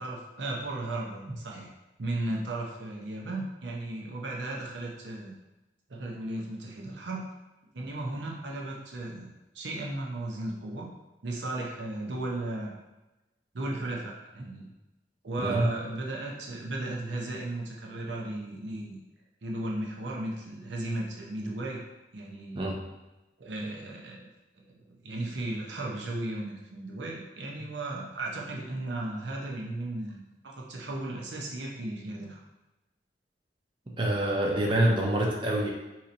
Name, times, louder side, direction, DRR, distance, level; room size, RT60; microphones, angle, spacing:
voice 1, 0.0-1.7 2.0-5.3 5.9-7.3 7.7-9.3 9.5-10.9 11.2-12.7 13.5-14.7 15.2-19.0 19.4-21.8 22.1-22.6 23.4-24.3 24.7-32.4, right 2 dB, 90° right, -1 dB, 0.7 m, -35 dB
voice 2, 34.0-35.7, right 1 dB, 30° right, -2 dB, 0.5 m, -26 dB
4.0 x 2.9 x 2.6 m, 1.0 s
head